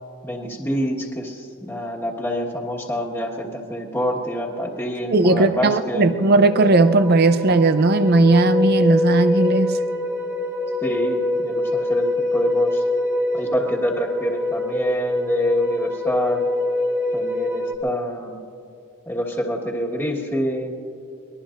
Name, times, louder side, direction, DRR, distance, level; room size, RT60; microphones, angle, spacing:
voice 1, 0.2-6.1 10.8-12.8 13.3-16.5 17.1-18.4 19.0-20.8, equal, 10° left, -3 dB, 1.5 m, -26 dB
voice 2, 5.1-9.8, right 2 dB, 50° right, 11 dB, 0.6 m, -17 dB
sound 1, 5.3-17.8, left 1 dB, 15° right, 1.1 m, -25 dB
24.0 x 20.5 x 2.6 m, 2.7 s
head